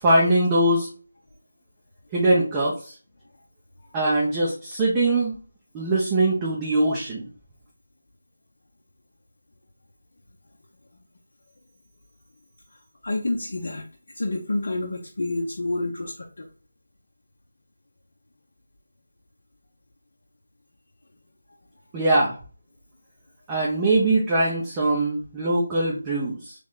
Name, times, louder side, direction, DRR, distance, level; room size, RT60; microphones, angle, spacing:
voice 1, 0.0-0.9 2.1-2.9 3.9-5.3 5.7-7.2 21.9-22.3 23.5-26.5, right 2 dB, 15° right, -5 dB, 0.8 m, -22 dB
voice 2, 13.0-13.9 14.1-16.5, left 2 dB, 65° left, -1 dB, 0.8 m, -28 dB
3.5 x 3.1 x 3.7 m, 0.39 s
figure-of-eight pair, 165°, 0 cm